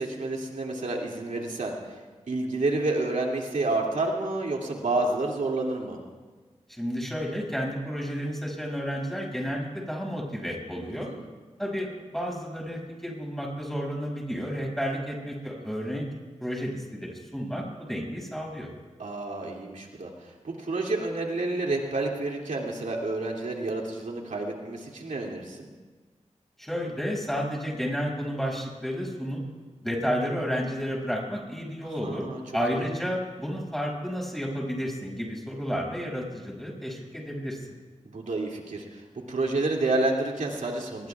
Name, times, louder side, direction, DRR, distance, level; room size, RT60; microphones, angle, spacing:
voice 1, 0.0-1.7 2.3-6.0 10.8-11.2 19.0-25.7 32.0-32.4 32.7-32.9 38.1-41.1, right 2 dB, 85° right, -1 dB, 2.6 m, -29 dB
voice 2, 6.7-11.1 11.6-16.0 16.4-18.7 26.6-29.4 29.8-32.2 32.5-37.6, equal, ahead, -2 dB, 6.6 m, -31 dB
24.0 x 21.0 x 2.4 m, 1.3 s
cardioid pair, 45°, 13 cm